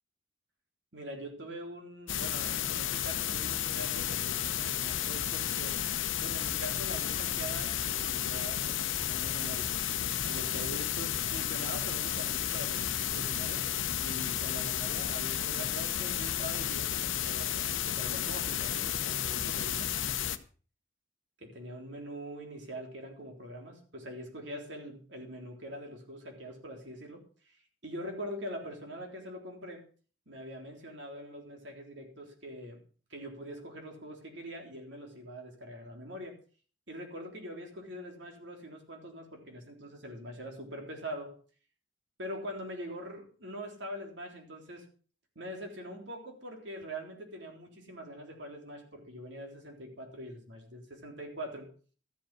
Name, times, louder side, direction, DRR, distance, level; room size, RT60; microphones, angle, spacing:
voice 1, 0.9-5.8 6.2-9.7 10.2-13.6 14.0-19.9 21.4-27.6 27.8-29.8 30.3-32.8 33.1-36.3 36.9-41.3 42.2-44.9 45.4-51.7, equal, 65° right, 2 dB, 3.7 m, -43 dB
sound 1, 2.1-20.4, left 10 dB, 85° left, 0.9 m, -32 dB
13.5 x 7.9 x 6.2 m, 0.41 s
head